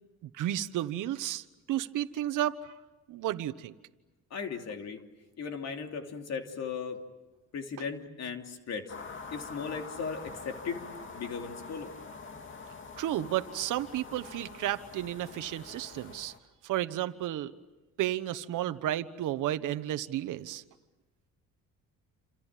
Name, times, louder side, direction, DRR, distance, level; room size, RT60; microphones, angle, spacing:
voice 1, 0.2-2.8 3.1-3.7 13.0-16.3 16.6-17.5 18.0-20.6, right 13 dB, 75° right, 11 dB, 1.2 m, -32 dB
voice 2, 4.3-5.0 5.4-7.0 7.5-8.9 9.3-10.8 11.1-11.9, left 5 dB, 55° left, 4 dB, 3.0 m, -37 dB
sound 1, 8.9-16.4, left 4 dB, 40° left, 2.5 m, -45 dB
29.0 x 27.0 x 7.5 m, 1.1 s
cardioid pair, 120°, 32 cm